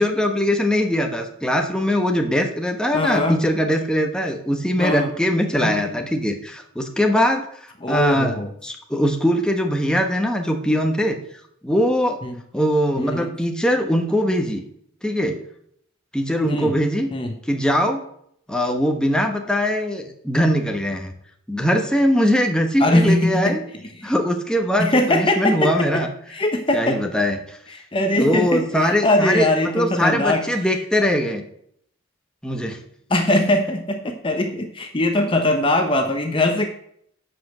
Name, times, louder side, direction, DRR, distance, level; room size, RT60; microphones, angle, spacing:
voice 1, 0.0-7.5 7.9-8.4 8.6-11.2 11.6-12.2 12.5-14.6 15.0-15.4 16.1-17.1 17.5-18.0 18.5-21.1 21.5-23.6 24.0-26.1 26.7-27.6 28.2-31.4 32.4-32.8, equal, 5° left, 3 dB, 1.1 m, -21 dB
voice 2, 2.9-3.4 4.8-5.1 5.6-5.9 7.8-8.5 12.2-12.4 13.0-13.3 16.5-16.7 17.1-17.4 22.8-23.6 24.0-24.1 24.8-26.0 26.3-27.0 27.7-30.7 33.1-36.7, left 1 dB, 25° left, 5 dB, 0.9 m, -21 dB
11.5 x 5.2 x 7.7 m, 0.69 s
head